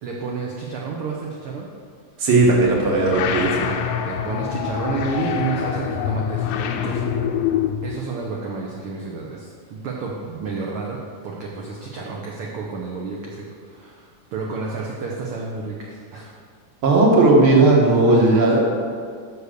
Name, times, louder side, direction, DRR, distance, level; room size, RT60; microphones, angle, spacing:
voice 1, 0.0-1.7 3.3-3.6 4.0-7.1 7.8-11.0 11.2-16.3, right 4 dB, 70° right, -2 dB, 1.3 m, -30 dB
voice 2, 2.2-3.8 16.8-18.7, right 2 dB, 50° right, -2 dB, 2.1 m, -16 dB
sound 1, 2.4-8.0, left 9 dB, 85° left, 2.1 m, -25 dB
7.1 x 6.7 x 6.6 m, 2.1 s
omnidirectional pair, 3.5 m